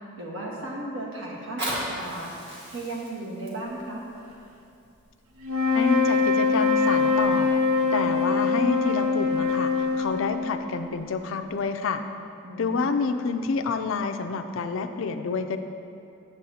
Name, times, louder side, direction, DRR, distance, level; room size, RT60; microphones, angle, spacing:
voice 1, 0.2-2.3 2.7-4.0 12.4-13.2, right 2 dB, 75° right, -3 dB, 1.4 m, -35 dB
Fire, 1.3-6.3 6.9-7.0, right 1 dB, 55° right, 1.7 m, -37 dB
sound 1, 5.4-10.9, left 4 dB, 90° right, 0.7 m, -23 dB
voice 2, 5.7-7.5 7.9-12.0 12.6-15.6, left 4 dB, 70° left, 8 dB, 0.4 m, -28 dB
9.1 x 7.3 x 2.8 m, 2.6 s
head